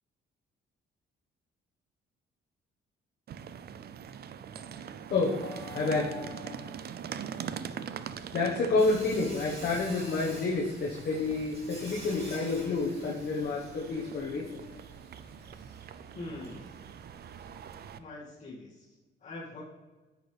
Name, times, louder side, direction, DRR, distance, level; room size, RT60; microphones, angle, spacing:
sound 1, 3.3-18.0, right 8 dB, 55° right, 0.5 m, -43 dB
voice 1, 5.1-6.8 8.3-14.8, left 3 dB, 55° left, -3 dB, 1.3 m, -30 dB
Sawing, 8.8-17.9, right 1 dB, 30° right, 2.7 m, -50 dB
voice 2, 16.1-16.7 18.0-19.6, left 2 dB, 40° left, -10 dB, 2.2 m, -43 dB
9.3 x 6.6 x 3.4 m, 1.2 s
cardioid pair, 90°, 20 cm